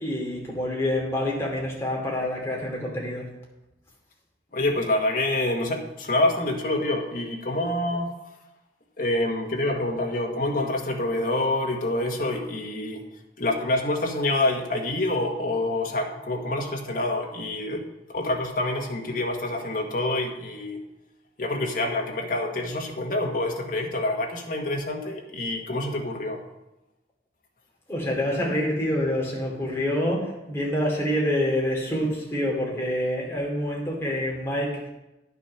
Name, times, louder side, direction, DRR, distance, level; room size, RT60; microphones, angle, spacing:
voice 1, 0.0-3.3 27.9-34.9, left 1 dB, 15° left, -3 dB, 2.8 m, -27 dB
voice 2, 4.5-8.1 9.0-13.0 13.4-20.8 21.4-26.4, left 2 dB, 50° left, 1 dB, 1.6 m, -27 dB
10.5 x 6.7 x 5.7 m, 0.95 s
head